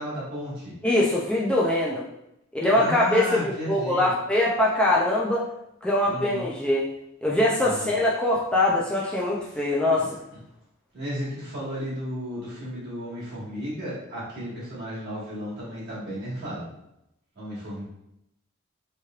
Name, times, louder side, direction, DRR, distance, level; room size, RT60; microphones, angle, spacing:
voice 1, 0.0-0.7 2.7-4.1 6.0-6.5 7.6-7.9 10.0-10.1 10.9-16.7 17.4-17.8, equal, 55° right, -8 dB, 1.4 m, -33 dB
voice 2, 0.8-2.0 2.5-3.3 3.7-5.5 5.8-6.9 7.2-10.2, left 1 dB, 5° left, -5 dB, 0.3 m, -23 dB
3.1 x 2.9 x 2.3 m, 0.83 s
head